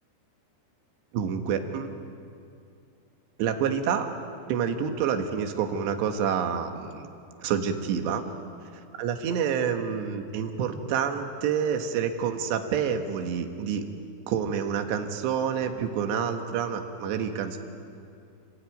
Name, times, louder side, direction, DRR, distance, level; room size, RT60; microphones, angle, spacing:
voice 1, 1.1-1.9 3.4-4.1 4.5-7.1 7.4-8.2 9.0-13.9 14.3-17.6, right 7 dB, 75° right, 5 dB, 3.6 m, -28 dB
29.5 x 17.0 x 9.3 m, 2.5 s
omnidirectional pair, 5.2 m